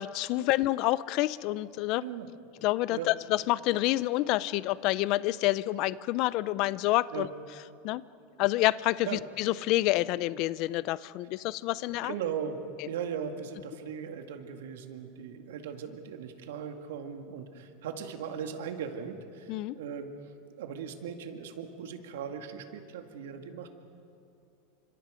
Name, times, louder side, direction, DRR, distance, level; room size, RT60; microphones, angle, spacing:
voice 1, 0.0-2.0 2.6-7.3 7.8-8.0 8.4-12.1 19.5-19.8, left 17 dB, 40° left, 18 dB, 0.5 m, -28 dB
voice 2, 12.0-12.6 12.8-20.1 20.6-23.7, right 7 dB, 85° right, 5 dB, 2.1 m, -38 dB
30.0 x 26.0 x 5.1 m, 2.6 s
supercardioid pair, 170°, 0 cm